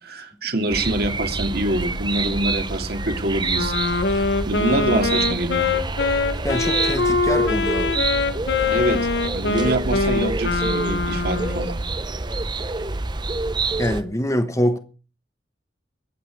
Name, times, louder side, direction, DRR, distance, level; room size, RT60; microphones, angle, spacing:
voice 1, 0.0-5.7 8.7-9.0 9.3-11.8 12.4-12.5, right 1 dB, 60° right, 2.6 m, -25 dB
sound 1, 0.7-14.0, right 3 dB, 25° right, 0.8 m, -27 dB
Wind instrument woodwind instrument, 3.5-11.8, left 4 dB, 70° left, 1.3 m, -23 dB
voice 2, 6.4-7.9 13.8-14.8, equal, 20° left, 1.1 m, -24 dB
22.5 x 8.4 x 4.7 m
head